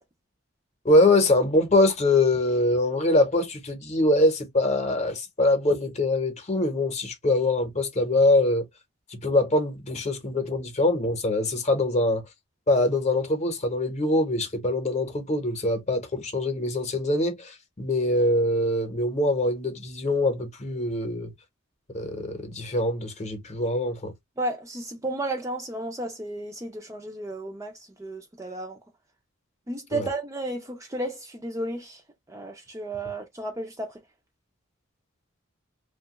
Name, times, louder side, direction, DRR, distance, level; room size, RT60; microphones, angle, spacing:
voice 1, 0.8-8.6 9.1-12.2 12.7-21.3 21.9-24.1 29.9-30.1, left 2 dB, 30° left, 0.8 m, -23 dB
voice 2, 24.4-27.7 28.0-28.8 29.7-32.0 32.3-33.9, right 1 dB, 15° right, 0.4 m, -33 dB
2.9 x 2.2 x 2.9 m
head